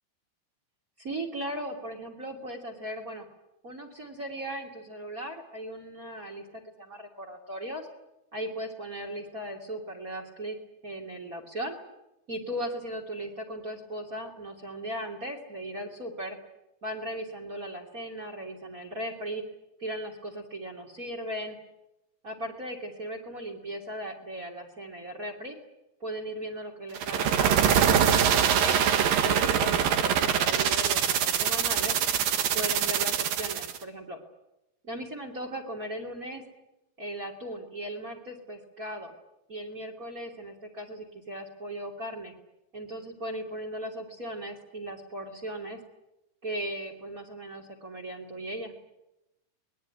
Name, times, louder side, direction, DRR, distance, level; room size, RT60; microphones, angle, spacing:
voice 1, 1.0-3.3 3.6-7.9 8.3-10.6 10.8-11.8 12.3-16.4 16.8-19.4 19.8-21.6 22.2-25.6 26.0-28.8 29.2-32.0 32.5-34.2 34.8-36.4 37.0-39.1 39.5-42.3 42.7-45.8 46.4-48.7, right 1 dB, 25° right, 3 dB, 2.8 m, -37 dB
sound 1, 26.9-33.8, right 8 dB, 70° right, 3.3 m, -24 dB
25.0 x 21.5 x 9.9 m, 0.92 s
omnidirectional pair, 4.3 m